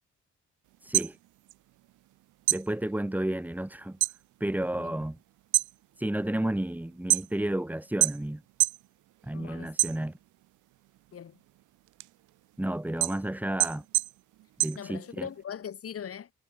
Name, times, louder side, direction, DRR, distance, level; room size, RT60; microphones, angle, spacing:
sound 1, 0.7-2.1 2.4-4.2 4.6-5.0 5.4-7.6 8.0-8.9 9.2-10.4 10.9-15.4, right 17 dB, 80° right, 0.7 m, -28 dB
voice 1, 0.8-1.2 2.5-4.0 4.4-5.2 6.0-8.4 9.2-10.2 12.6-13.8 14.6-15.3, right 1 dB, 5° right, 1.5 m, -31 dB
voice 2, 9.3-9.9 11.1-11.4 14.7-16.3, left 8 dB, 50° left, 2.4 m, -40 dB
cardioid pair, 90°, 30 cm